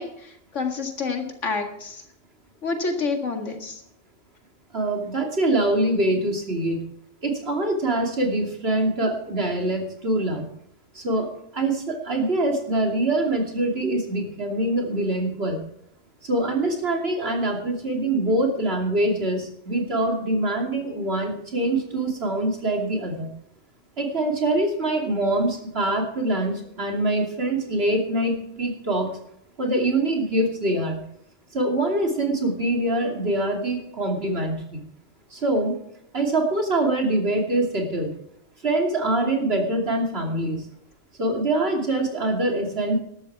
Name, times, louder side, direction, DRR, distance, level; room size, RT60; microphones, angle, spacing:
voice 1, 0.0-2.0 2.6-3.8, left 4 dB, 70° left, 4 dB, 2.2 m, -28 dB
voice 2, 4.7-6.8 7.2-10.5 10.9-11.3 11.5-15.6 16.2-23.3 24.0-29.2 29.6-31.0 31.5-34.8 35.3-35.8 36.1-38.1 38.6-40.7 41.2-43.0, right 1 dB, 55° right, 2 dB, 2.9 m, -24 dB
12.5 x 12.0 x 4.7 m, 0.75 s
omnidirectional pair, 1.3 m